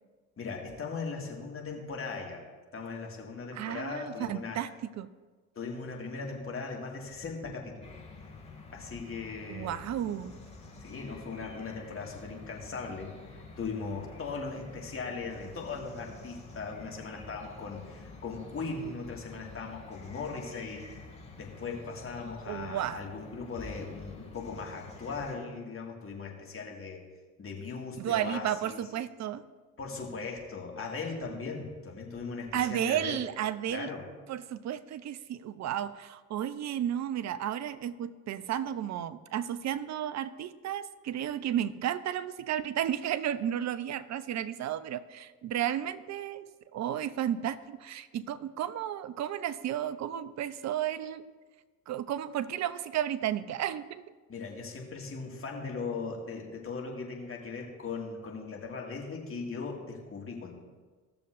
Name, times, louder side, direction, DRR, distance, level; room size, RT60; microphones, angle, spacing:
voice 1, 0.4-2.4 2.7-4.6 5.6-8.0 8.7-9.8 10.8-20.9 21.4-27.0 27.4-28.8 29.8-33.2 33.7-34.1 54.3-60.5, left 4 dB, 30° left, 0 dB, 2.1 m, -39 dB
voice 2, 3.5-5.1 9.5-10.3 22.5-23.1 28.0-29.4 32.5-33.9 34.3-51.3 51.9-54.0, right 10 dB, 40° right, 14 dB, 0.6 m, -33 dB
sound 1, 7.8-25.3, left 3 dB, 15° left, 2.3 m, -49 dB
16.5 x 6.8 x 2.6 m, 1.4 s
hypercardioid pair, 65°, 43 cm